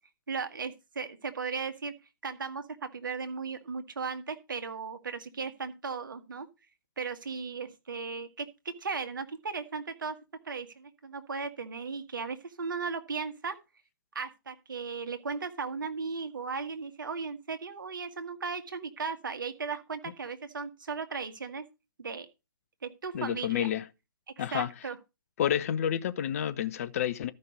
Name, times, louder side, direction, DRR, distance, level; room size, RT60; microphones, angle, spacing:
voice 1, 0.3-1.9 2.2-2.6 2.9-6.5 7.0-8.5 8.8-10.1 10.4-13.6 14.1-21.6 22.0-22.3 22.8-23.7 24.4-25.0, right 5 dB, 65° right, 1.5 m, -36 dB
voice 2, 23.1-23.8 24.4-24.7 25.4-27.3, left 10 dB, 40° left, 0.7 m, -29 dB
13.0 x 5.5 x 5.0 m
figure-of-eight pair, 130°, 12 cm